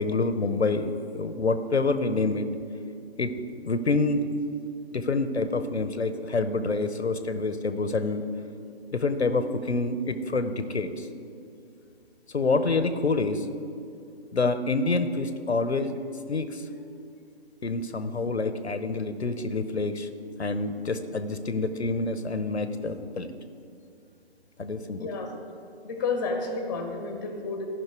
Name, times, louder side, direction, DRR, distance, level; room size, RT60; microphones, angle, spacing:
voice 1, 0.0-2.5 3.2-3.3 3.6-4.2 4.9-8.3 8.9-11.1 12.3-13.5 14.3-15.9 16.3-16.6 17.6-20.1 20.4-23.3 24.6-25.1, left 3 dB, 80° left, 10 dB, 0.7 m, -27 dB
voice 2, 25.0-25.4 25.8-27.7, left 4 dB, 20° left, 4 dB, 0.9 m, -31 dB
14.5 x 5.6 x 4.6 m, 2.6 s
figure-of-eight pair, 145°, 32 cm